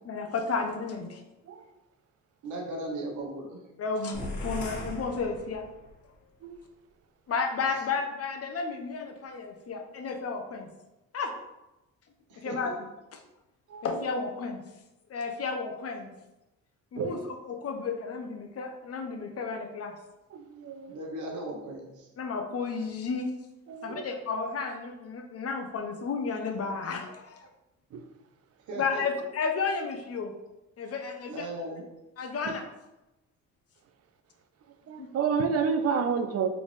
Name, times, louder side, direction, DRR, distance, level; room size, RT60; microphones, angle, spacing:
voice 1, 0.1-1.2 3.8-5.6 7.3-10.7 11.1-11.3 12.4-12.7 13.8-14.6 15.1-16.1 16.9-17.2 17.4-19.9 22.2-23.3 23.8-27.5 28.8-30.3 30.8-31.5 32.2-32.6 35.0-35.1, left 4 dB, 50° left, 5 dB, 0.7 m, -32 dB
voice 2, 2.4-3.6 12.3-12.7 20.9-22.1 28.7-29.2 31.3-31.8, right 1 dB, 80° right, 0 dB, 1.1 m, -37 dB
sound 1, 4.1-6.0, left 2 dB, 75° left, 1.1 m, -38 dB
voice 3, 20.3-21.1 23.7-24.0 27.9-28.1 32.4-32.5 34.9-36.5, right 6 dB, 55° right, 9 dB, 0.5 m, -30 dB
4.0 x 3.5 x 3.3 m, 0.99 s
cardioid pair, 90°, 30 cm